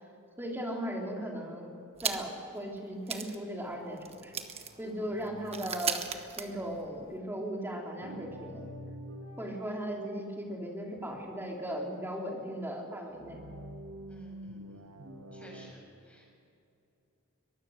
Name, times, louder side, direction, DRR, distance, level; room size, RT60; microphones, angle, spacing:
voice 1, 0.4-4.3 4.8-8.7 9.4-13.4, equal, 10° right, 0 dB, 3.5 m, -37 dB
sound 1, 2.0-2.5 2.8-2.9 3.1-7.2, right 6 dB, 30° right, 1.3 m, -38 dB
sound 2, 8.0-11.5 13.1-15.7, equal, 75° right, 1.7 m, -46 dB
voice 2, 14.1-15.0 15.3-16.3, equal, 5° left, -2 dB, 6.9 m, -55 dB
23.0 x 20.5 x 6.5 m, 2.6 s
head